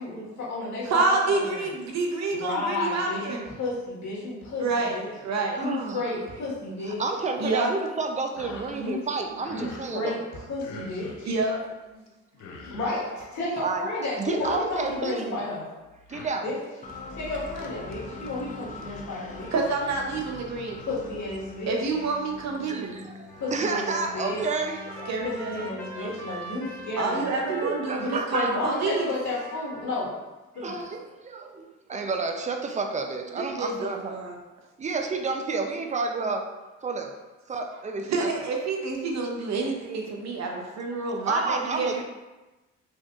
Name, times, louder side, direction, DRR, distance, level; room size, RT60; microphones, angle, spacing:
voice 1, 0.0-1.0 1.5-1.6 2.3-5.1 5.6-7.0 8.7-9.0 9.5-11.3 12.6-15.7 16.4-16.6 17.1-19.5 20.9-21.8 23.4-24.4 25.2-27.2 27.9-30.1 30.5-30.8, left 2 dB, 70° left, -6 dB, 1.5 m, -32 dB
voice 2, 0.9-3.4 4.6-5.6 7.4-7.7 11.2-11.6 11.9-12.0 19.5-20.8 21.6-23.0 25.1-25.8 27.0-29.1 33.3-34.3 38.0-42.0, right 3 dB, 60° right, 0 dB, 0.8 m, -28 dB
voice 3, 5.6-6.1 6.8-10.2 13.6-13.9 14.2-15.4 16.1-16.5 22.7-25.4 25.9-26.4 27.5-28.5 30.6-34.1 34.8-36.4 36.8-37.1 37.5-38.3 41.0-42.0, right 4 dB, 25° right, 4 dB, 0.5 m, -30 dB
sound 1, 8.4-8.8 9.1-9.9 10.6-11.3 12.1-12.2 12.3-13.1 14.2-15.1 15.8-16.3, left 3 dB, 90° left, 0.6 m, -44 dB
sound 2, 16.8-28.6, left 2 dB, 25° left, 0.6 m, -44 dB
Trumpet, 23.3-30.1, equal, 10° left, 1.1 m, -42 dB
4.2 x 3.0 x 2.4 m, 1.1 s
cardioid pair, 90°, 30 cm